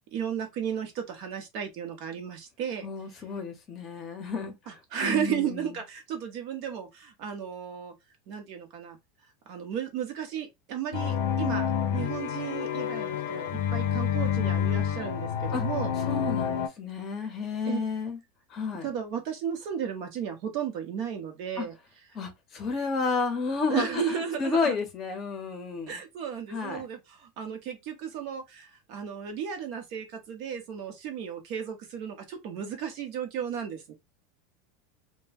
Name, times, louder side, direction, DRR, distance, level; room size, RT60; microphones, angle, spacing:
voice 1, 0.1-2.9 4.7-7.9 8.3-9.0 9.5-15.9 17.7-17.8 18.8-21.7 23.7-24.7 25.9-33.9, right 8 dB, 50° right, 0.8 m, -34 dB
voice 2, 2.8-4.5 5.0-5.7 15.5-15.6 16.0-18.2 18.5-18.9 21.6-21.7 22.1-26.0 26.5-26.8, left 4 dB, 25° left, 0.7 m, -31 dB
sound 1, 10.9-16.7, left 8 dB, 85° left, 0.5 m, -28 dB
2.2 x 2.2 x 3.3 m
supercardioid pair, 160°, 0 cm